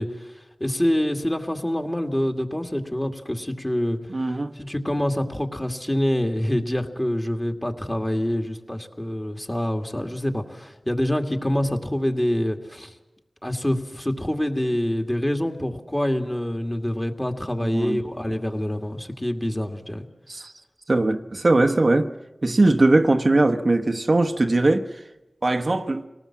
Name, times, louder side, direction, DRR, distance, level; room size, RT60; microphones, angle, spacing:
voice 1, 0.0-12.9 13.4-20.1, left 1 dB, 15° left, 2.3 m, -26 dB
voice 2, 4.1-4.5 17.6-18.0 20.3-20.5 20.9-22.1 22.4-24.9 25.4-26.1, right 2 dB, 55° right, 1.1 m, -20 dB
26.5 x 18.5 x 7.4 m
cardioid pair, 45°, 0 cm